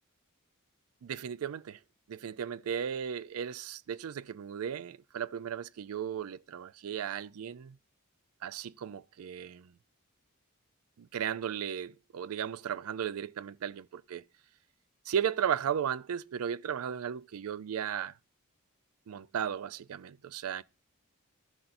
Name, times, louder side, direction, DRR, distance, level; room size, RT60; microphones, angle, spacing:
voice 1, 1.0-1.8 2.1-7.8 8.4-9.7 11.0-14.2 15.1-18.1 19.1-20.6, right 8 dB, 80° right, 0.4 m, -35 dB
15.5 x 5.7 x 2.5 m
head